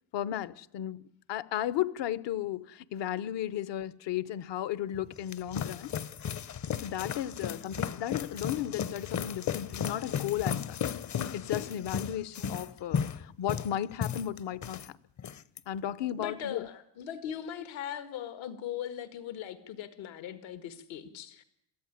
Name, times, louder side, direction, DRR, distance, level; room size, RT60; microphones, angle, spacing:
voice 1, 0.1-1.0 1.3-5.9 6.8-10.8 11.3-15.0 15.7-16.7, left 11 dB, 65° left, 1.0 m, -34 dB
sound 1, 4.9-14.9 15.2-15.6, left 8 dB, 40° left, 0.8 m, -35 dB
voice 2, 16.2-21.4, left 9 dB, 80° left, 2.0 m, -39 dB
23.5 x 14.5 x 9.8 m
cardioid pair, 110°, 46 cm